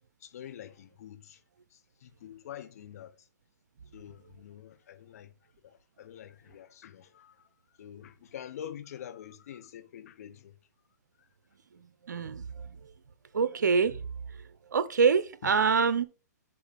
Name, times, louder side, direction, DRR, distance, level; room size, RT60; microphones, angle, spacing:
voice 1, 0.2-1.4 1.7-3.3 3.9-5.3 5.6-7.5 7.8-10.6 11.2-11.3 15.4-15.5, left 10 dB, 60° left, 0.8 m, -46 dB
voice 2, 12.1-12.4 13.3-14.0 14.7-16.0, right 5 dB, 80° right, 0.6 m, -25 dB
7.0 x 3.7 x 5.0 m
hypercardioid pair, 135°, 10 cm